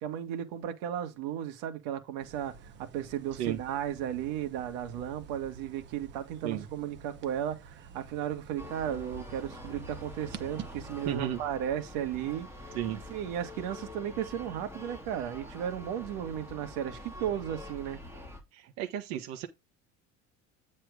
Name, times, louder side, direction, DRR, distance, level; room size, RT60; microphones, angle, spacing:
voice 1, 0.0-12.5 13.1-18.0, right 10 dB, 80° right, 2.0 m, -35 dB
sound 1, 2.2-11.2, right 7 dB, 40° right, 1.1 m, -49 dB
sound 2, 8.6-18.4, left 1 dB, 10° right, 3.3 m, -46 dB
voice 2, 11.0-11.4 12.7-13.0 18.5-19.5, right 11 dB, 65° right, 1.5 m, -33 dB
9.6 x 4.3 x 5.0 m
cardioid pair, 160°, 29 cm